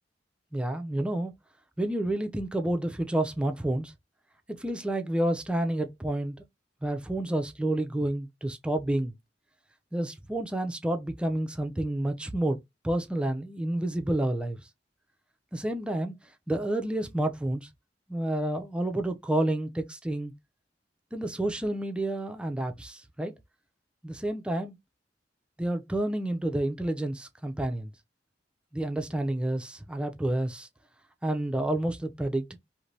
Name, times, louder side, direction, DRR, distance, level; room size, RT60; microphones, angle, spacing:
voice 1, 0.5-1.3 1.8-3.9 4.5-6.3 6.8-9.1 9.9-12.6 12.8-14.6 15.5-16.1 16.5-17.7 18.1-20.3 21.1-23.3 24.0-24.8 25.6-27.9 28.7-30.7 31.2-32.5, right 1 dB, 5° right, 0.4 m, -29 dB
2.6 x 2.5 x 3.1 m
head